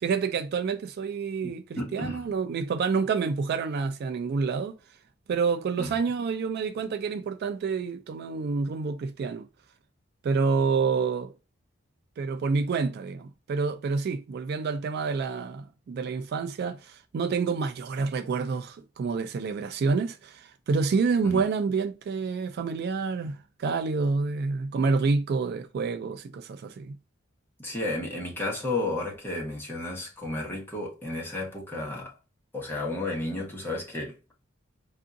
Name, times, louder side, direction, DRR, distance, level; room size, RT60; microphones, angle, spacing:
voice 1, 0.0-4.7 5.3-9.5 10.2-11.3 12.2-27.0, right 4 dB, 55° right, 0.3 m, -28 dB
voice 2, 1.4-2.2 5.8-5.9 21.2-21.4 27.6-32.1 32.5-34.1, left 2 dB, 10° left, 1.1 m, -32 dB
3.5 x 2.5 x 2.5 m
head